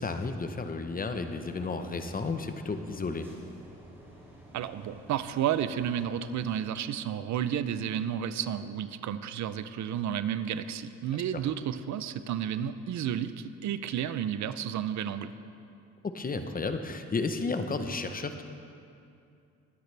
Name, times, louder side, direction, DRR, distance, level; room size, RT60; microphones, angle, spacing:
voice 1, 0.0-3.3 11.3-11.4 16.0-18.4, left 3 dB, 30° left, 8 dB, 0.9 m, -32 dB
sound 1, 1.1-6.5, equal, 5° right, 3.4 m, -51 dB
voice 2, 4.5-15.3, right 9 dB, 70° right, 12 dB, 0.6 m, -32 dB
22.0 x 9.3 x 3.4 m, 2.5 s
cardioid pair, 90°, 30 cm